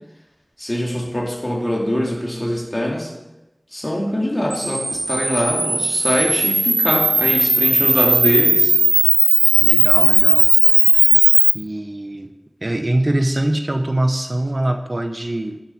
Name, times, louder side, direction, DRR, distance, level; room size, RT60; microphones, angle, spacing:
voice 1, 0.6-3.1 3.7-8.7, equal, 30° left, -1 dB, 2.6 m, -23 dB
Camera, 4.5-11.5, right 2 dB, 85° right, 1.2 m, -16 dB
voice 2, 9.6-10.5 10.9-11.2 11.5-12.3 12.6-15.6, right 1 dB, 45° right, 7 dB, 0.7 m, -23 dB
11.5 x 7.6 x 4.6 m, 0.99 s
wide cardioid pair, 45°, 0 cm